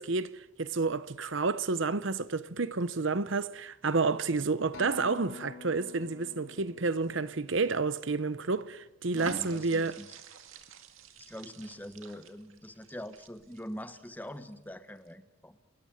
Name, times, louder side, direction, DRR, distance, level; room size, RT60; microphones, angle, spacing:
voice 1, 0.0-10.0, right 4 dB, 65° right, 0.8 m, -30 dB
Acoustic guitar, 4.7-9.1 9.8-9.9, left 4 dB, 75° left, 4.7 m, -48 dB
voice 2, 9.1-10.2 11.2-15.6, equal, 10° left, 1.2 m, -43 dB
sound 1, 9.2-14.5 15.0-15.1, right 5 dB, 80° right, 2.1 m, -48 dB
28.5 x 14.0 x 9.2 m
head